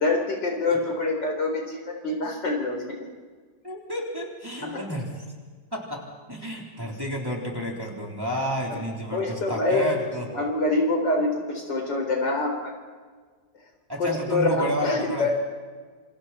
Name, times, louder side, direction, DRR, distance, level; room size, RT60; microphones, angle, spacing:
voice 1, 0.0-3.0 4.6-4.8 9.1-9.9 10.3-12.7 14.0-15.3, left 2 dB, 75° left, 2 dB, 4.8 m, -25 dB
voice 2, 3.6-5.1 5.7-10.3 13.9-15.3, equal, 10° right, -2 dB, 3.9 m, -31 dB
28.0 x 26.5 x 4.4 m, 1.5 s
omnidirectional pair, 2.0 m